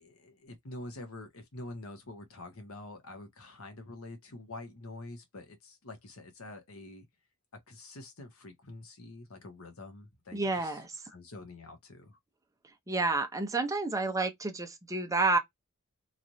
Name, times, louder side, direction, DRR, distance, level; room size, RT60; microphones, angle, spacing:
voice 1, 0.0-7.1 7.7-12.2, left 2 dB, 70° left, 1.1 m, -46 dB
voice 2, 10.3-11.0 12.9-15.4, right 3 dB, 15° right, 0.6 m, -30 dB
3.1 x 2.5 x 2.6 m
head